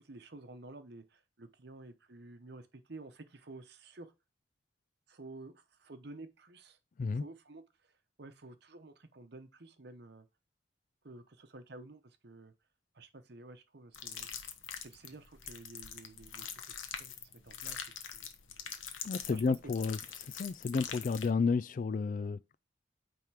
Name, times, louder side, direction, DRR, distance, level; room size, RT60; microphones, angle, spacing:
voice 1, 0.0-4.1 5.1-6.8 7.1-10.3 11.0-12.5 12.9-14.3 14.8-17.8 18.1-18.3 19.3-19.8, right 2 dB, 55° right, 0.9 m, -51 dB
sound 1, 13.9-21.3, left 8 dB, 90° left, 1.1 m, -44 dB
voice 2, 19.0-20.0 20.3-22.5, left 4 dB, 40° left, 0.3 m, -31 dB
9.1 x 3.6 x 4.7 m
head